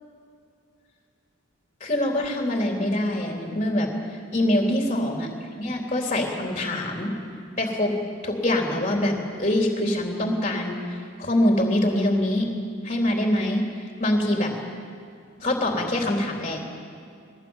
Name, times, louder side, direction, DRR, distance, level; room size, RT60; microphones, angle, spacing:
voice 1, 1.8-3.9 4.3-5.3 5.6-7.1 7.6-7.9 8.2-12.5 12.8-13.6 14.0-14.5 15.4-16.6, left 1 dB, 30° left, 1 dB, 3.4 m, -24 dB
22.5 x 19.0 x 9.0 m, 2.4 s
head